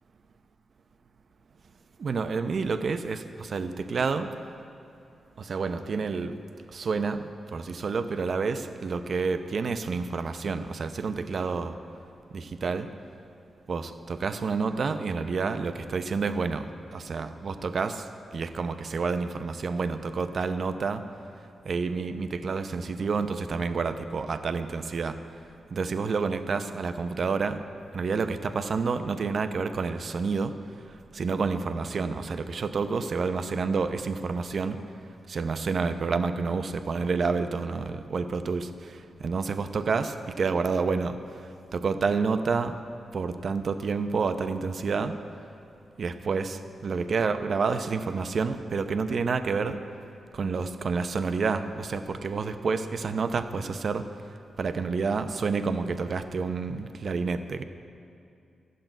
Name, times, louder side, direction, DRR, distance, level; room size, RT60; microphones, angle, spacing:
voice 1, 2.0-4.3 5.4-6.3 6.7-11.8 12.3-12.9 13.7-16.7 16.9-18.0 18.3-21.0 21.6-25.2 25.7-27.6 27.9-30.5 31.1-34.8 35.3-41.2 41.7-42.8 43.1-45.1 46.0-49.8 50.3-54.0 54.6-57.6, right 4 dB, 60° right, 9 dB, 0.7 m, -29 dB
12.0 x 7.7 x 8.9 m, 2.6 s
cardioid pair, 60°, 0 cm